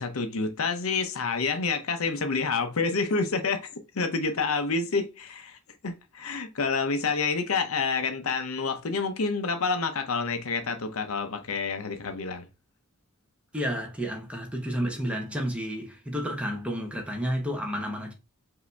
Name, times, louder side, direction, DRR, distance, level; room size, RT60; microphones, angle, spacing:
voice 1, 0.0-3.7 3.9-12.5, left 4 dB, 75° left, 0.7 m, -28 dB
voice 2, 13.5-18.1, equal, 5° right, 0.9 m, -31 dB
4.9 x 2.7 x 3.3 m
head